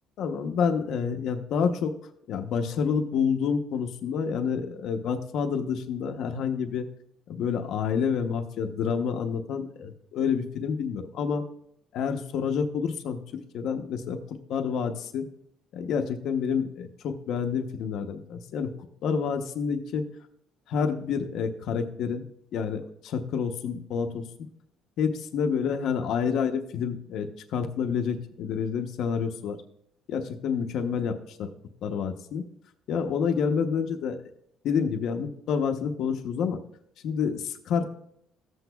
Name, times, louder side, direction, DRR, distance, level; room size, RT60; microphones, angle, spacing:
voice 1, 0.2-1.9 2.3-6.9 7.3-11.4 11.9-13.2 13.5-15.2 15.7-18.7 19.0-20.0 20.7-22.2 22.5-24.3 25.0-29.6 30.1-31.5 31.8-32.4 32.9-34.2 34.6-36.6 37.0-37.8, left 6 dB, 60° left, 5 dB, 0.7 m, -28 dB
14.0 x 8.0 x 2.3 m, 0.71 s
cardioid pair, 155°, 0 cm